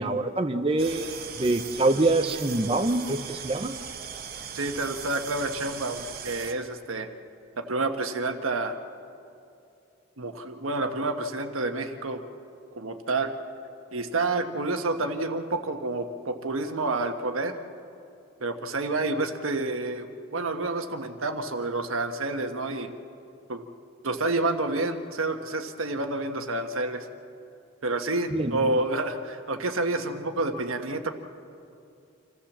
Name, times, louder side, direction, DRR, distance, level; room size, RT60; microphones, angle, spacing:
voice 1, 0.0-3.7 28.3-28.6, right 2 dB, 25° right, 7 dB, 0.6 m, -25 dB
sound 1, 0.8-6.5, right 7 dB, 45° right, 1.1 m, -39 dB
voice 2, 4.5-7.1 7.6-8.8 10.2-12.2 12.8-13.3 13.9-17.5 18.4-22.9 23.5-23.6 24.0-27.1 27.8-31.1, right 2 dB, 85° right, 6 dB, 1.4 m, -29 dB
27.0 x 14.5 x 7.3 m, 2.6 s
head